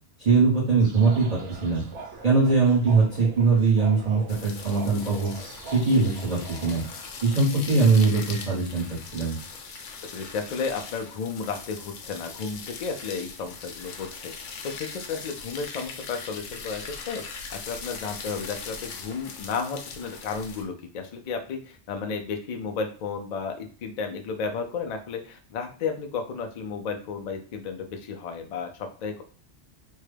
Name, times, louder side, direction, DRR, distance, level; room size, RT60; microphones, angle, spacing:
voice 1, 0.2-1.8 2.2-5.3 5.7-6.8 7.2-8.8 9.1-9.4, right 4 dB, 35° right, -6 dB, 1.0 m, -21 dB
sound 1, 0.8-8.3, right 4 dB, 75° right, 1.1 m, -42 dB
sound 2, 4.3-20.6, left 5 dB, 85° left, 0.9 m, -40 dB
voice 2, 10.1-29.2, left 5 dB, 60° left, 4 dB, 0.4 m, -33 dB
3.6 x 2.2 x 3.3 m, 0.41 s
omnidirectional pair, 1.2 m